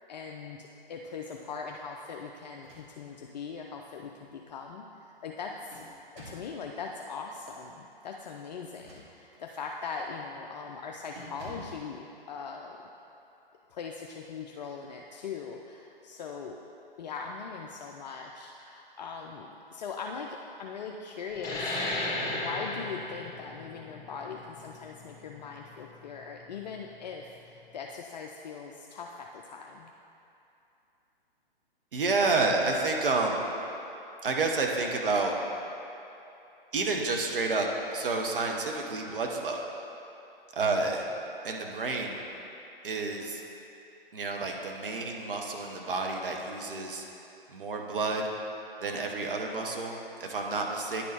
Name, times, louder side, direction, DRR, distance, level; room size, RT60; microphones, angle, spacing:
voice 1, 0.1-5.8 6.1-12.8 13.7-16.6 17.0-21.8 22.3-29.9, left 5 dB, 45° left, 1 dB, 0.5 m, -40 dB
sound 1, 2.5-3.2 3.7-3.8 5.2-6.6 8.6-9.5 10.0-10.2 10.6-10.8 11.1-11.8, right 1 dB, 35° right, 1.6 m, -49 dB
sound 2, 21.3-26.5, left 2 dB, 10° left, 1.2 m, -35 dB
voice 2, 31.9-33.5 34.2-35.3 36.7-39.6 40.5-41.0 41.4-42.2 42.8-43.4 44.1-47.0 47.5-48.2 48.8-51.0, right 3 dB, 65° right, 1 dB, 1.0 m, -29 dB
9.9 x 4.2 x 4.2 m, 2.9 s
figure-of-eight pair, 120°, 29 cm